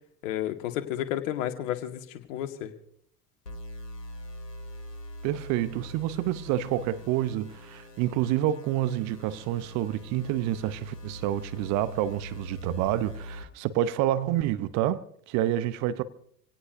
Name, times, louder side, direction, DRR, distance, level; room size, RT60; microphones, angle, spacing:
voice 1, 0.2-2.7, left 12 dB, 55° left, 1.9 m, -32 dB
sound 1, 3.5-13.4, equal, 85° left, 2.3 m, -43 dB
voice 2, 5.2-16.0, right 12 dB, 35° right, 0.8 m, -28 dB
27.0 x 17.5 x 2.6 m
figure-of-eight pair, 80°, 47 cm